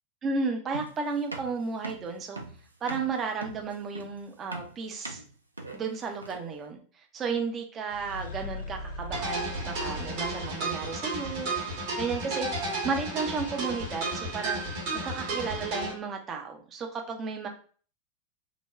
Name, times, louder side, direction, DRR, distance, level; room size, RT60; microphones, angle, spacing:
voice 1, 0.2-2.4 2.8-5.2 5.7-11.6 12.0-12.5 12.8-14.6 15.0-17.5, right 5 dB, 25° right, 3 dB, 0.6 m, -33 dB
sound 1, 0.7-6.6, right 2 dB, 80° right, 0.4 m, -41 dB
sound 2, 7.9-10.9, left 1 dB, 65° left, 0.4 m, -40 dB
sound 3, 9.1-15.9, right 2 dB, 50° right, 1.0 m, -33 dB
3.2 x 2.1 x 2.4 m, 0.42 s
figure-of-eight pair, 90°, 0 cm